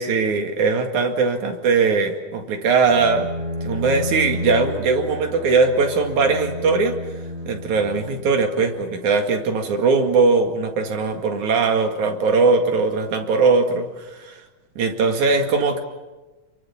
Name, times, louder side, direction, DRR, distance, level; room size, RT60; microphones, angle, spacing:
voice 1, 0.0-3.3 3.6-7.0 7.5-14.4 14.8-15.8, right 4 dB, 85° right, 4 dB, 3.6 m, -20 dB
Bowed string instrument, 2.9-8.7, left 1 dB, 25° right, 4.0 m, -31 dB
28.5 x 23.5 x 7.1 m, 1.1 s
omnidirectional pair, 3.3 m